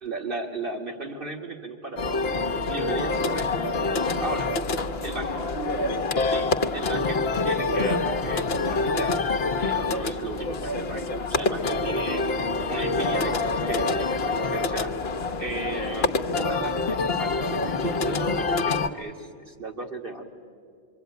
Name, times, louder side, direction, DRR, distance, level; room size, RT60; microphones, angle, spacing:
voice 1, 0.0-2.0 2.7-3.6 4.2-4.5 5.0-5.4 6.3-11.0 11.3-12.2 12.7-20.3, right 3 dB, 50° right, 1 dB, 2.3 m, -35 dB
sound 1, 2.0-18.9, left 3 dB, 65° left, 1.2 m, -26 dB
25.5 x 24.0 x 9.3 m, 2.2 s
omnidirectional pair, 1.1 m